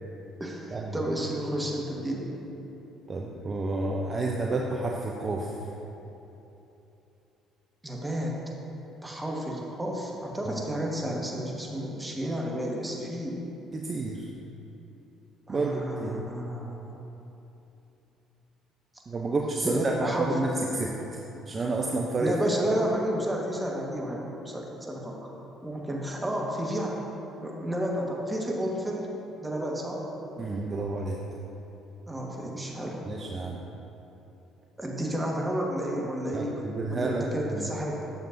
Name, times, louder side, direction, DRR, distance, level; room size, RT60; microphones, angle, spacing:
voice 1, 0.4-2.3 7.8-8.4 9.0-13.4 15.5-16.9 19.6-20.4 22.2-25.3 25.6-27.0 27.4-29.1 29.4-30.0 32.1-33.0 34.8-36.6 36.9-38.1, right 1 dB, 15° right, -2 dB, 1.4 m, -31 dB
voice 2, 3.1-5.5 10.5-10.6 13.7-14.3 15.5-16.3 19.1-20.9 21.5-22.4 22.6-23.0 30.4-31.2 33.1-33.6 36.3-37.3 37.5-37.7, right 2 dB, 35° right, 0 dB, 0.6 m, -30 dB
9.3 x 6.9 x 2.6 m, 3.0 s
hypercardioid pair, 60°, 0 cm